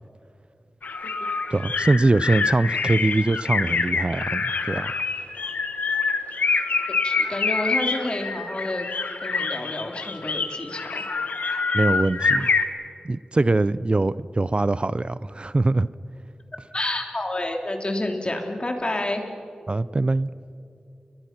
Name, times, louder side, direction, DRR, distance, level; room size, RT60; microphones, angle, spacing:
sound 1, 0.8-12.6, left 4 dB, 90° left, 1.4 m, -26 dB
voice 1, 1.5-4.9 11.7-12.5 13.0-15.9 19.7-20.3, right 2 dB, 40° right, 17 dB, 0.5 m, -22 dB
voice 2, 7.0-8.9 9.2-11.0 16.7-19.2, left 1 dB, 40° left, 4 dB, 3.2 m, -29 dB
29.5 x 22.5 x 6.0 m, 2.6 s
cardioid pair, 40°, 3 cm